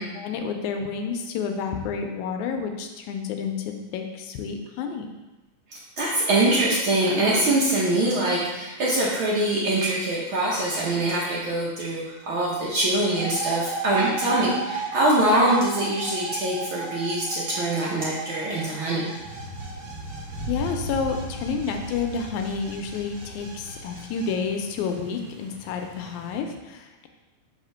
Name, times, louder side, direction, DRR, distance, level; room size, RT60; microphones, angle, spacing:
voice 1, 0.0-5.1 20.5-27.1, left 5 dB, 80° left, 4 dB, 1.9 m, -30 dB
voice 2, 6.0-19.1, right 1 dB, 85° right, -6 dB, 1.1 m, -23 dB
sound 1, 13.2-24.3, right 3 dB, 40° right, 1.7 m, -35 dB
sound 2, 19.1-26.4, equal, 65° right, 1.5 m, -38 dB
4.9 x 3.5 x 5.5 m, 1.1 s
omnidirectional pair, 3.6 m